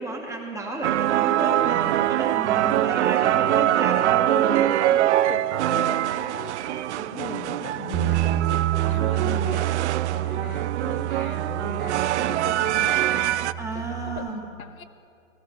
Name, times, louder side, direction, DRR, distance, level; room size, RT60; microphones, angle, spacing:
voice 1, 0.0-4.8 13.6-14.4, right 2 dB, 5° right, -1 dB, 2.0 m, -32 dB
sound 1, 0.8-13.5, right 13 dB, 60° right, 0.5 m, -24 dB
voice 2, 4.9-9.8 10.1-14.8, left 7 dB, 85° left, 11 dB, 1.0 m, -39 dB
Bass guitar, 7.9-14.2, right 14 dB, 30° right, 0.8 m, -28 dB
17.0 x 16.5 x 3.1 m, 2.5 s
hypercardioid pair, 120°, 41 cm